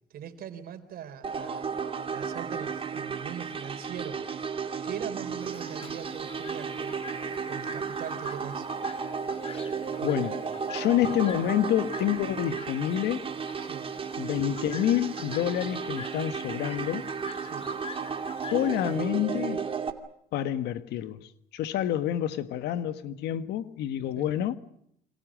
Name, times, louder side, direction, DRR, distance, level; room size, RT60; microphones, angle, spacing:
voice 1, 0.1-1.7 2.1-4.6 4.8-7.2 7.5-8.7 13.6-13.9 17.4-17.7 24.2-24.3, right 8 dB, 65° right, 4.0 m, -41 dB
sound 1, 1.2-19.9, right 6 dB, 35° right, 2.6 m, -34 dB
Chirp tweet, 5.4-19.0, left 5 dB, 35° left, 4.0 m, -46 dB
voice 2, 10.0-10.4 10.7-13.2 14.2-17.1 18.5-19.6 20.3-24.6, left 11 dB, 80° left, 1.6 m, -28 dB
28.5 x 26.0 x 6.3 m
cardioid pair, 110°, 17 cm